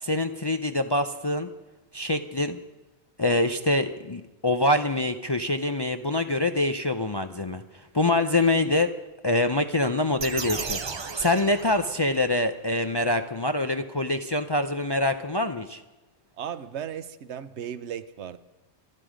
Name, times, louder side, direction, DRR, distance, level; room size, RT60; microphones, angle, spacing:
voice 1, 0.0-1.5 1.9-2.6 3.2-8.9 9.2-15.8, left 2 dB, 35° left, 7 dB, 0.4 m, -25 dB
sound 1, 10.2-12.3, right 5 dB, 35° right, 0.4 m, -34 dB
voice 2, 16.4-18.4, right 9 dB, 80° right, 13 dB, 1.0 m, -36 dB
25.5 x 9.6 x 5.1 m, 1.1 s
omnidirectional pair, 1.2 m